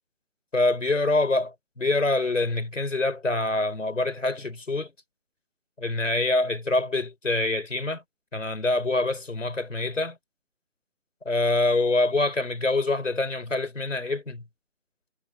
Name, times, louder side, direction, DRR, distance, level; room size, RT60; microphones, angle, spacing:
voice 1, 0.5-4.9 5.8-8.0 8.3-10.2 11.3-14.4, left 2 dB, 80° left, 3.9 m, -25 dB
figure-of-eight pair, 160°, 37 cm